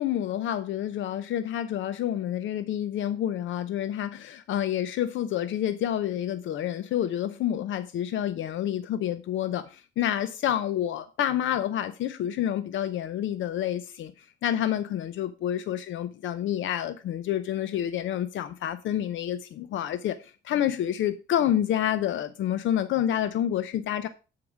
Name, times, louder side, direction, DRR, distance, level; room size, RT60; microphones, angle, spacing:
voice 1, 0.0-24.1, left 11 dB, 75° left, 0.6 m, -28 dB
11.0 x 4.8 x 4.8 m
cardioid pair, 90°, 20 cm